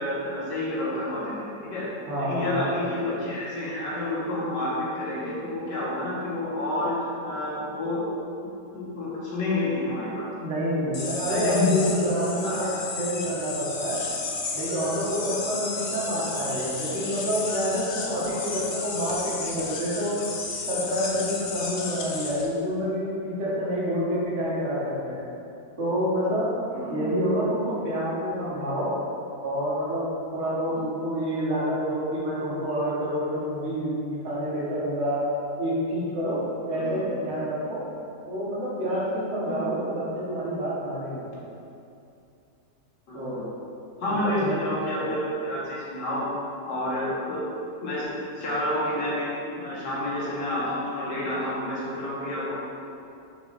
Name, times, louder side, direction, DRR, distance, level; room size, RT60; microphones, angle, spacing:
voice 1, 0.0-1.9 2.2-7.0 7.2-8.0 8.4-10.3 11.3-11.8 12.4-12.8 18.0-18.4 26.7-27.1 30.7-30.8 36.7-37.0 39.4-39.7 43.1-43.5 44.0-46.3 46.7-47.5 47.8-48.1 48.3-49.3 49.6-52.5, left 1 dB, 85° left, -8 dB, 2.2 m, -29 dB
voice 2, 2.1-2.7 10.4-14.0 14.5-20.1 20.7-25.2 25.8-26.5 26.9-28.9 29.4-30.0 30.3-35.3 35.6-37.8 38.3-41.3 43.1-43.4 44.1-45.1, equal, 40° right, -8 dB, 1.5 m, -28 dB
sound 1, 10.9-22.5, left 4 dB, 60° left, 0.6 m, -33 dB
6.6 x 5.9 x 2.6 m, 2.6 s
omnidirectional pair, 1.9 m